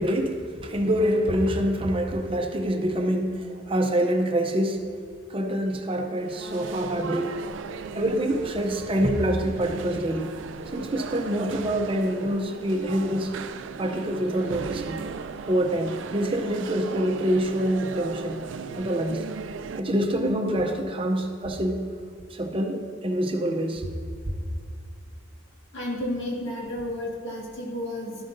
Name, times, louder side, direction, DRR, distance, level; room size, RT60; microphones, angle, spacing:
voice 1, 0.0-4.9 5.3-7.4 7.9-10.3 10.7-13.3 13.8-15.0 15.5-18.4 18.8-19.2 19.8-21.9 22.3-23.9, right 1 dB, 30° right, 4 dB, 0.6 m, -26 dB
sound 1, 6.2-19.8, right 5 dB, 80° right, 0.4 m, -37 dB
voice 2, 25.7-28.2, left 1 dB, 75° left, -4 dB, 2.0 m, -32 dB
12.5 x 7.5 x 2.6 m, 2.2 s
head